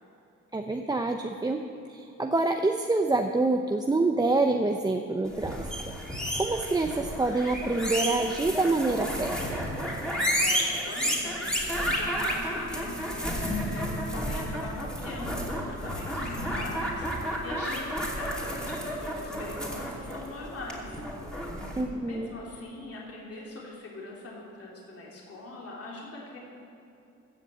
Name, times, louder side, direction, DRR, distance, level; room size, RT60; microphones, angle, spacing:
voice 1, 0.5-1.6 1.9-5.9 6.4-9.4 21.8-22.3, right 2 dB, 15° right, 4 dB, 0.6 m, -27 dB
sound 1, 5.3-21.8, equal, 5° left, 2.9 m, -31 dB
voice 2, 10.4-21.0 22.0-26.4, left 2 dB, 50° left, -3 dB, 3.1 m, -42 dB
15.5 x 7.3 x 7.5 m, 2.8 s
cardioid pair, 90°, 30 cm